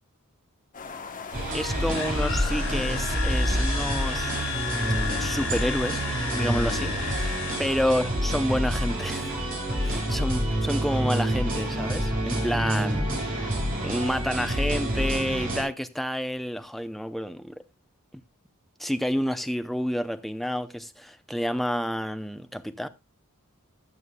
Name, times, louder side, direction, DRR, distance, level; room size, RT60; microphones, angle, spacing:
sound 1, 0.7-6.5, left 5 dB, 40° left, 1.2 m, -40 dB
sound 2, 1.3-15.6, right 1 dB, 40° right, 4.8 m, -27 dB
voice 1, 1.5-4.3 5.2-9.4 9.8-13.6 13.8-17.5 18.1-18.2 18.8-22.9, equal, ahead, 0.6 m, -29 dB
sound 3, 1.8-8.2, left 6 dB, 65° left, 4.0 m, -34 dB
19.0 x 7.1 x 2.3 m
head